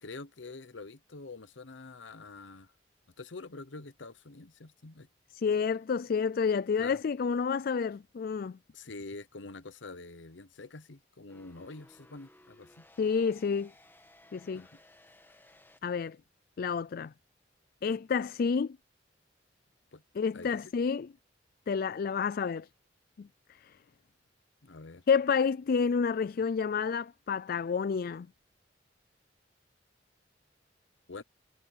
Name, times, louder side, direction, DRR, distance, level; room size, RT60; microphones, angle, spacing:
voice 1, 0.0-2.7 3.2-5.1 6.8-7.0 8.7-12.8 14.5-14.8 19.9-20.0 20.3-20.7 24.6-25.0 31.1-31.2, left 3 dB, 85° left, 0.9 m, -46 dB
voice 2, 5.3-8.6 13.0-13.7 14.3-14.7 15.8-16.2 16.6-17.1 17.8-18.8 20.2-21.1 21.7-22.7 23.2-23.3 23.6-23.7 25.1-28.3, left 6 dB, 50° left, 0.4 m, -29 dB
sound 1, 11.3-15.8, left 1 dB, 10° left, 2.0 m, -59 dB
head